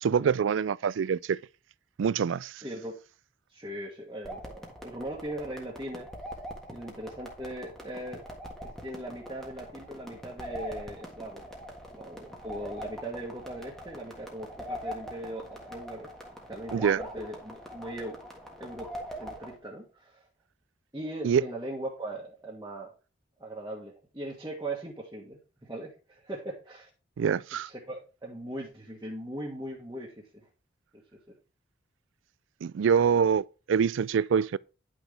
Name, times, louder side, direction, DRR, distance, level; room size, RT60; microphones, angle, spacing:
voice 1, 0.0-1.4 2.0-2.6 16.7-17.0 21.2-21.4 27.2-27.7 32.6-34.6, right 7 dB, 85° right, 0.3 m, -25 dB
voice 2, 2.6-3.0 3.5-6.1 6.7-8.2 8.6-11.4 11.9-16.1 16.5-18.2 18.6-20.2 20.9-22.9 23.4-26.9 27.6-30.5 30.9-31.4, right 1 dB, 20° right, 1.7 m, -39 dB
sound 1, 4.2-19.6, equal, ahead, 1.6 m, -42 dB
10.0 x 6.1 x 3.4 m
head